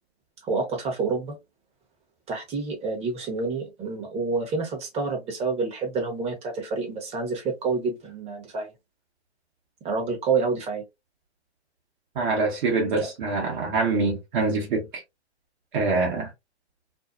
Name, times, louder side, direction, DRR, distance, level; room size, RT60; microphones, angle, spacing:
voice 1, 0.4-1.4 2.3-8.7 9.8-10.8 12.9-13.1, right 4 dB, 20° right, 1.0 m, -28 dB
voice 2, 12.1-15.0 15.7-16.3, right 3 dB, 50° right, 1.0 m, -25 dB
2.7 x 2.3 x 2.3 m
hypercardioid pair, 130°, 34 cm